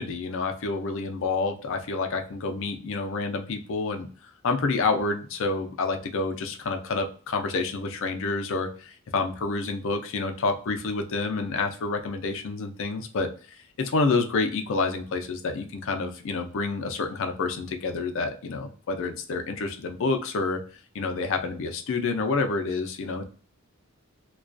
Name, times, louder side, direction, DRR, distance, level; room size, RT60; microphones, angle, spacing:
voice 1, 0.0-20.6 20.9-23.3, left 3 dB, 65° left, 5 dB, 0.4 m, -28 dB
2.3 x 2.2 x 2.4 m, 0.40 s
head